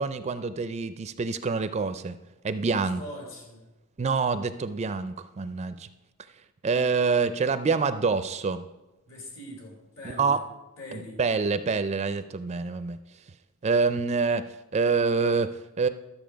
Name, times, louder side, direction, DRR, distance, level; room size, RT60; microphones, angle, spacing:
voice 1, 0.0-2.2 2.4-3.0 4.0-5.9 6.6-8.6 10.2-10.4 10.9-13.0 13.6-15.9, right 4 dB, 30° right, 11 dB, 0.4 m, -26 dB
voice 2, 2.9-3.7 9.1-10.4 10.8-11.2, left 1 dB, 65° left, 0 dB, 3.4 m, -42 dB
12.5 x 7.2 x 5.1 m, 1.0 s
head